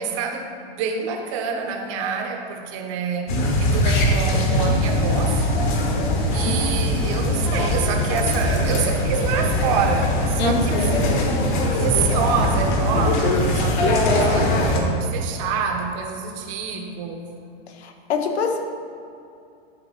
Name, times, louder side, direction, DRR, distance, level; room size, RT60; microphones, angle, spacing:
voice 1, 0.0-5.4 6.3-11.2 11.7-17.3, right 6 dB, 30° right, 3 dB, 0.8 m, -27 dB
sound 1, 3.3-14.8, left 1 dB, 50° left, 1.4 m, -21 dB
voice 2, 10.4-11.0 17.8-18.6, left 4 dB, 90° left, 5 dB, 1.2 m, -25 dB
11.5 x 4.4 x 5.4 m, 2.6 s
supercardioid pair, 175°, 31 cm